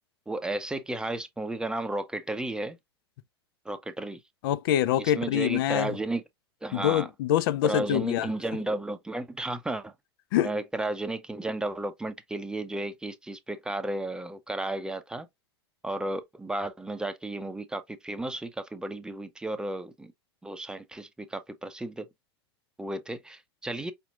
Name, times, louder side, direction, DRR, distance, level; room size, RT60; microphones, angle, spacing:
voice 1, 0.3-2.8 3.7-4.2 5.0-6.2 6.6-7.1 7.6-9.9 10.4-15.3 15.8-20.1 20.4-22.1 22.8-23.9, right 2 dB, 5° right, 0.6 m, -33 dB
voice 2, 4.4-6.0 6.7-8.3 10.3-10.5, left 12 dB, 55° left, 0.4 m, -25 dB
5.0 x 2.8 x 2.4 m
figure-of-eight pair, 90°, 14 cm